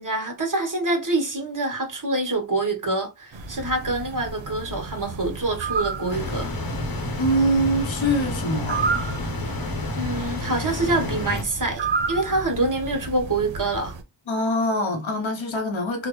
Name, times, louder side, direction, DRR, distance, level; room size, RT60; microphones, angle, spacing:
voice 1, 0.0-6.5 10.0-13.9, right 2 dB, 45° right, 1.2 m, -26 dB
sound 1, 3.3-14.0, right 4 dB, 85° right, 0.6 m, -32 dB
sound 2, 6.1-11.4, left 2 dB, 50° left, 0.9 m, -30 dB
voice 2, 7.2-8.9 14.3-16.1, equal, 90° left, 0.9 m, -24 dB
3.6 x 2.0 x 3.0 m
wide cardioid pair, 50°, 45 cm